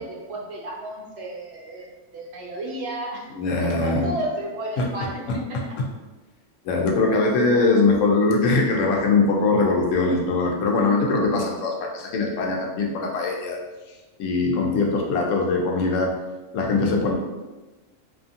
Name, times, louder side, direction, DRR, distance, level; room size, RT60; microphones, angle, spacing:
voice 1, 0.0-3.2 3.6-5.2, right 1 dB, 65° right, -3 dB, 0.8 m, -32 dB
voice 2, 3.4-4.1 4.8-4.9 5.3-5.4 6.6-13.6 14.2-16.1 16.5-17.1, left 3 dB, 85° left, 0 dB, 0.9 m, -21 dB
2.7 x 2.5 x 2.5 m, 1.2 s
omnidirectional pair, 1.3 m